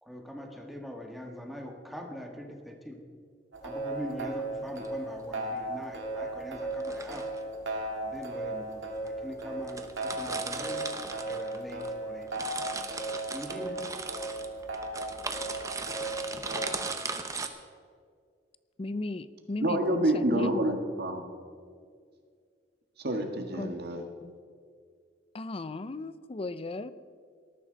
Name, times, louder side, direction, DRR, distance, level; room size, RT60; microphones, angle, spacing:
voice 1, 0.0-3.0 3.6-7.3 8.0-10.9 11.2-12.3 13.3-13.8, equal, ahead, 2 dB, 1.6 m, -42 dB
sound 1, 3.5-16.9, right 2 dB, 75° right, 2.1 m, -36 dB
sound 2, 4.6-4.9 6.7-7.4 8.2-8.3 9.1-9.2 9.4-9.5 9.7-11.9 12.2-17.5, right 4 dB, 20° right, 0.9 m, -38 dB
voice 2, 18.8-20.6 23.5-23.8 24.2-24.3 25.3-26.9, left 2 dB, 30° left, 14 dB, 0.5 m, -36 dB
voice 3, 19.6-21.3 23.0-24.0, right 1 dB, 60° right, 4 dB, 1.6 m, -28 dB
19.0 x 13.5 x 3.9 m, 2.1 s
head